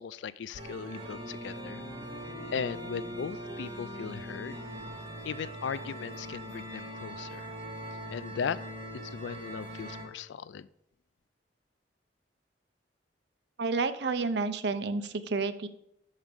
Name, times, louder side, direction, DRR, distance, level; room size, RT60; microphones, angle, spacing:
voice 1, 0.0-1.8 2.5-4.6 5.2-7.5 8.1-8.6 9.0-10.7, left 6 dB, 80° left, 17 dB, 0.4 m, -37 dB
sound 1, 0.5-10.0, equal, 30° right, 2.0 m, -41 dB
voice 2, 13.6-15.7, right 4 dB, 65° right, 11 dB, 0.6 m, -30 dB
5.9 x 5.7 x 6.7 m, 0.78 s
head